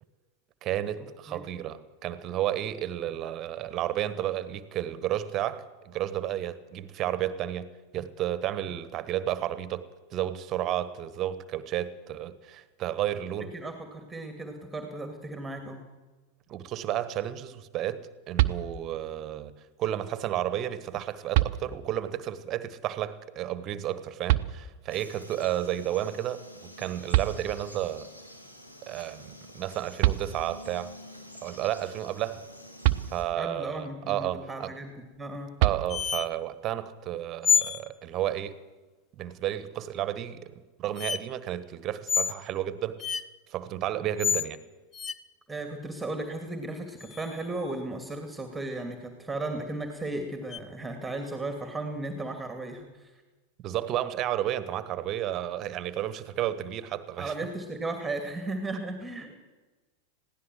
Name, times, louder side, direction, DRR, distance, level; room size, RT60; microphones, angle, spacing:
voice 1, 0.6-13.5 16.5-19.5 19.8-28.1 28.8-31.0 31.4-32.4 33.1-34.7 35.6-38.6 39.2-40.5 40.8-43.0 43.5-44.6 53.6-57.3, right 12 dB, 35° right, 1.4 m, -32 dB
voice 2, 13.5-15.8 33.4-35.5 45.5-53.1 57.2-59.4, right 2 dB, 5° right, 2.4 m, -35 dB
sound 1, 18.4-19.1 20.6-20.7 21.3-22.1 24.3-25.0 26.8-26.9 27.1-28.0 29.7-29.8 30.0-30.8 32.8-33.6 35.6-36.4, right 16 dB, 50° right, 0.8 m, -27 dB
Frog, 24.9-33.2, left 1 dB, 80° left, 3.4 m, -48 dB
sound 2, 35.9-36.3 37.4-37.8 40.0-40.1 41.0-41.2 42.1-42.4 43.0-43.2 44.2-44.5 44.9-45.1 47.0-47.6 50.5-50.6, left 6 dB, 25° left, 0.8 m, -27 dB
21.0 x 16.0 x 7.8 m
figure-of-eight pair, 90°, 0 cm